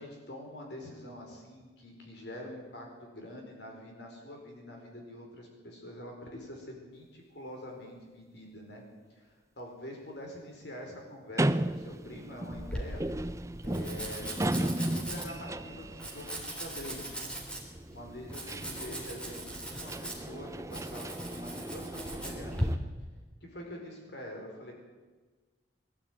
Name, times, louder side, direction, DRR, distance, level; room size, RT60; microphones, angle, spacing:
voice 1, 0.0-8.8 9.1-13.0 13.6-17.2 17.9-22.7 23.4-24.7, left 1 dB, 60° left, 1 dB, 4.8 m, -45 dB
sound 1, 11.4-22.8, right 1 dB, 15° right, 0.5 m, -36 dB
Domestic sounds home sounds, 12.5-22.7, right 1 dB, 5° left, 3.4 m, -40 dB
22.0 x 13.0 x 9.2 m, 1.3 s
head